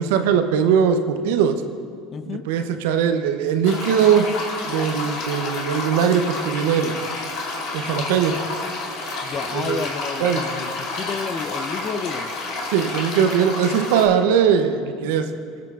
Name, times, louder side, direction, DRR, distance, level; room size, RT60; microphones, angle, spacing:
voice 1, 0.0-1.6 2.3-4.3 4.6-7.0 7.7-8.3 9.5-9.8 10.2-10.4 12.7-15.3, right 7 dB, 80° right, 8 dB, 0.6 m, -20 dB
voice 2, 2.1-2.5 9.2-12.3, left 5 dB, 40° left, 12 dB, 0.5 m, -31 dB
sound 1, 3.6-14.1, left 2 dB, 65° left, 2.3 m, -30 dB
22.0 x 7.8 x 2.4 m, 2.3 s
supercardioid pair, 95°, 0 cm